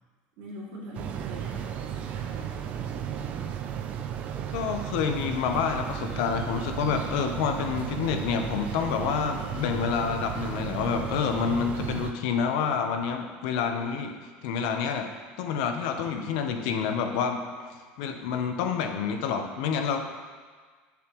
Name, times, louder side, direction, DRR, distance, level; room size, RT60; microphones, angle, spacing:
voice 1, 0.4-3.6, right 1 dB, 60° right, -5 dB, 2.5 m, -43 dB
sound 1, 0.9-12.1, right 9 dB, 35° right, 0.4 m, -34 dB
voice 2, 4.5-14.2 14.4-15.1 15.4-20.0, left 6 dB, 70° left, 5 dB, 0.7 m, -28 dB
9.7 x 7.1 x 3.0 m, 1.5 s
cardioid pair, 170°, 4 cm